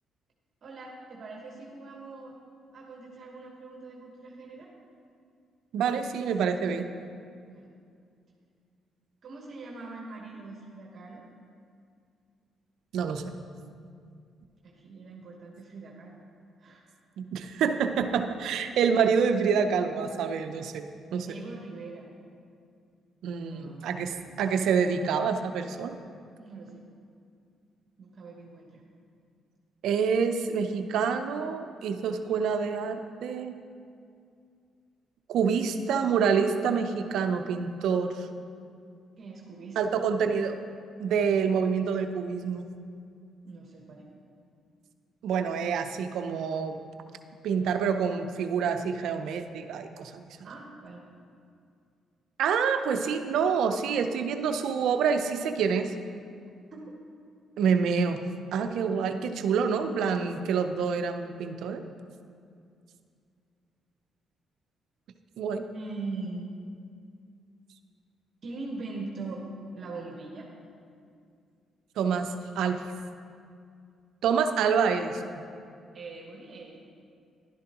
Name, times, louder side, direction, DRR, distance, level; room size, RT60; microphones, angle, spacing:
voice 1, 0.6-2.4 2.7-4.7 7.5-7.7 9.2-11.2 14.6-16.2 16.6-16.8 21.2-22.1 23.4-24.4 26.4-26.8 28.0-28.8 39.2-39.9 43.4-44.0 50.4-51.0 56.7-56.9 65.7-66.6 68.4-69.5 69.7-70.5 75.9-76.8, right 3 dB, 55° right, -1 dB, 1.2 m, -42 dB
voice 2, 5.7-6.9 12.9-13.2 17.2-20.9 21.1-21.3 23.2-26.0 29.8-33.5 35.3-38.3 39.8-40.6 41.0-42.7 45.2-46.8 47.4-50.3 52.4-55.9 57.6-58.2 58.5-61.8 65.4-65.6 72.0-72.8 74.2-75.4, right 6 dB, 80° right, 7 dB, 0.6 m, -27 dB
11.5 x 10.5 x 2.9 m, 2.3 s
cardioid pair, 90°, 0 cm